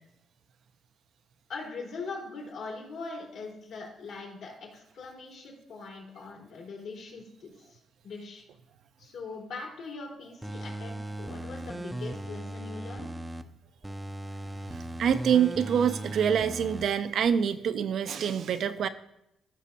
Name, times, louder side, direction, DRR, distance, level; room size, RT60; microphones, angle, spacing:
voice 1, 1.5-7.8 8.0-8.4 9.0-13.1, left 4 dB, 80° left, -3 dB, 3.9 m, -41 dB
sound 1, 10.4-13.4 13.8-16.9 17.3-17.4, right 1 dB, 10° right, 0.6 m, -38 dB
voice 2, 14.7-18.9, right 8 dB, 65° right, 10 dB, 0.6 m, -26 dB
15.0 x 6.3 x 2.8 m, 0.82 s
cardioid pair, 90°, 0 cm